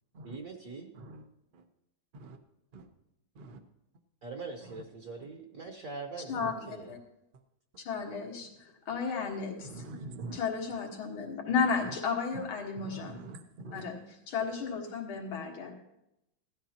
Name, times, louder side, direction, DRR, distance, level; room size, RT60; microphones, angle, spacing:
voice 1, 0.2-0.9 4.2-6.9, right 4 dB, 50° right, 1.2 m, -42 dB
voice 2, 6.3-7.0 7.9-9.7 10.3-13.2 13.7-15.7, left 5 dB, 90° left, 2.5 m, -33 dB
voice 3, 9.6-10.4 12.8-13.9, right 3 dB, 75° right, 0.4 m, -44 dB
17.0 x 12.5 x 2.9 m
omnidirectional pair, 2.2 m